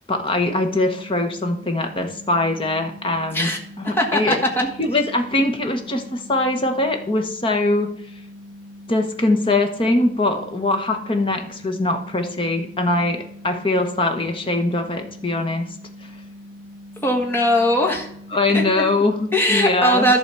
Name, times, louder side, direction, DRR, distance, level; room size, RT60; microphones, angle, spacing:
voice 1, 0.1-3.5 3.8-7.9 8.9-15.7 18.3-20.1, left 2 dB, 30° left, 5 dB, 1.2 m, -22 dB
sound 1, 0.6-19.4, left 1 dB, 65° right, 0.9 m, -42 dB
voice 2, 3.9-4.6 17.0-18.1 18.5-18.8 19.3-20.2, equal, 15° left, 0 dB, 1.5 m, -19 dB
11.5 x 4.1 x 6.9 m, 0.69 s
head